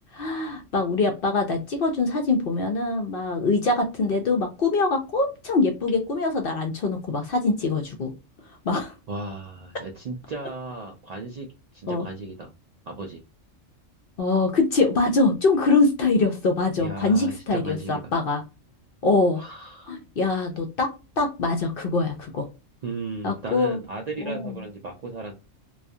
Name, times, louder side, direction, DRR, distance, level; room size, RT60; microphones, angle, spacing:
voice 1, 0.1-8.1 8.6-8.9 11.9-12.0 14.2-18.4 19.0-19.4 19.9-22.5 23.2-23.8 24.2-24.5, left 3 dB, 60° left, 3 dB, 0.6 m, -23 dB
voice 2, 9.1-12.5 12.9-13.2 16.8-18.1 19.4-20.0 22.8-25.3, right 3 dB, 75° right, 1 dB, 0.3 m, -35 dB
2.3 x 2.3 x 2.6 m, 0.28 s
omnidirectional pair, 1.3 m